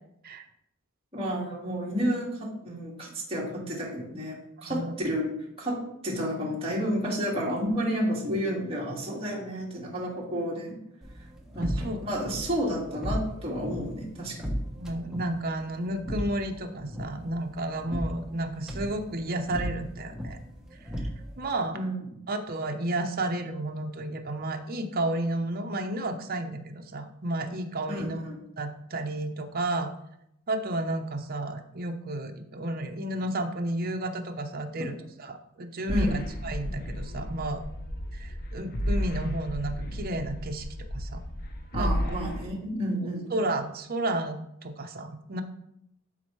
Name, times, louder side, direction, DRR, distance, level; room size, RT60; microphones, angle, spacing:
voice 1, 1.1-5.3 5.6-5.8 6.0-10.8 11.5-14.6 21.7-21.9 27.9-28.4 35.9-36.2 41.7-43.3, equal, 25° right, -4 dB, 2.0 m, -31 dB
sound 1, 11.0-21.6, equal, 5° right, 1.0 m, -37 dB
voice 2, 11.6-12.0 14.8-20.4 21.4-21.8 22.3-28.2 28.6-29.9 30.5-34.9 35.2-37.6 38.1-40.7 40.9-41.2 41.8-42.2 43.3-45.4, right 1 dB, 45° right, 5 dB, 0.8 m, -32 dB
sound 2, 35.9-42.5, equal, 45° left, 0.8 m, -33 dB
11.5 x 4.4 x 3.2 m, 0.79 s
head